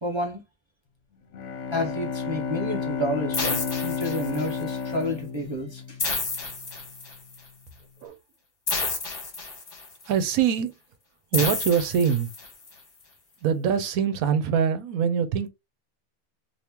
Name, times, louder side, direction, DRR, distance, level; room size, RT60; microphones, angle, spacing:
voice 1, 0.0-0.4 1.7-6.0, equal, 35° right, 0.4 m, -30 dB
Bowed string instrument, 1.3-6.5, left 6 dB, 65° left, 1.0 m, -32 dB
sound 1, 3.3-4.7 6.0-7.4 8.7-10.0 11.3-12.7, left 3 dB, 45° left, 1.2 m, -30 dB
voice 2, 10.1-10.7 11.3-12.3 13.4-15.5, right 7 dB, 80° right, 1.1 m, -23 dB
2.9 x 2.6 x 3.5 m
omnidirectional pair, 1.5 m